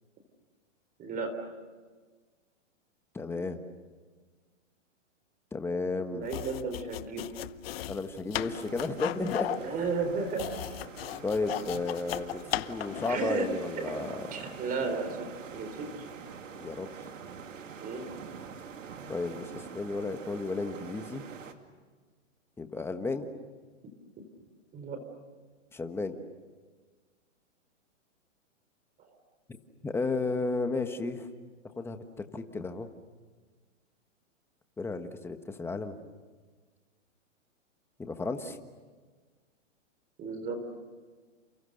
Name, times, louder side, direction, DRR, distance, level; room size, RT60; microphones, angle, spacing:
voice 1, 1.0-1.3 6.1-7.4 9.5-10.5 12.4-12.5 13.1-13.5 13.8-14.0 14.3-16.0 17.8-18.0 24.7-25.0 29.0-29.1 40.2-40.6, right 4 dB, 20° right, 7 dB, 3.9 m, -34 dB
voice 2, 3.1-3.6 5.5-6.3 7.9-9.5 11.2-14.3 16.5-16.9 19.1-21.2 22.6-23.3 25.7-26.2 29.8-31.3 31.8-32.0 32.3-32.9 34.8-36.0 38.0-38.6, left 3 dB, 5° left, 7 dB, 1.4 m, -33 dB
sound 1, 6.2-13.3, left 14 dB, 50° left, 0.9 m, -36 dB
sound 2, 8.4-21.5, right 6 dB, 80° right, 2.7 m, -45 dB
29.5 x 29.0 x 6.6 m, 1.5 s
hypercardioid pair, 140°, 38 cm